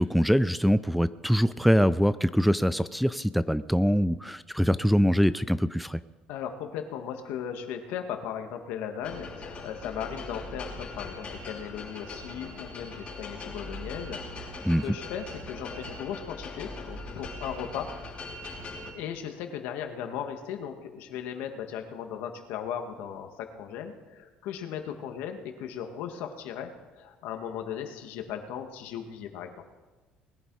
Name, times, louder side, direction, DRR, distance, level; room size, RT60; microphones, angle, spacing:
voice 1, 0.0-6.0 14.6-14.8, equal, ahead, 13 dB, 0.4 m, -23 dB
voice 2, 6.3-14.6 14.8-17.9 18.9-29.5, left 8 dB, 80° left, 5 dB, 1.8 m, -37 dB
sound 1, 9.0-18.9, left 2 dB, 40° left, 3.5 m, -40 dB
20.5 x 11.0 x 4.8 m, 1.2 s
cardioid pair, 105°, 3 cm